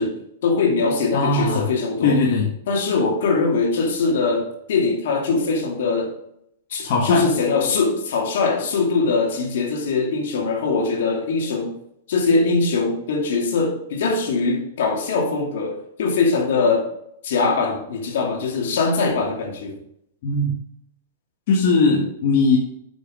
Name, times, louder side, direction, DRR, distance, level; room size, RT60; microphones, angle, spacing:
voice 1, 0.0-2.2 2.7-6.2 6.7-11.7 12.1-16.9 17.2-19.8, left 4 dB, 70° left, 2.6 m, -22 dB
voice 2, 1.1-1.6 2.0-2.5 6.8-7.3 20.2-20.5 21.5-22.6, left 3 dB, 50° left, 1.7 m, -19 dB
7.9 x 6.2 x 5.1 m
supercardioid pair, 160°, 0 cm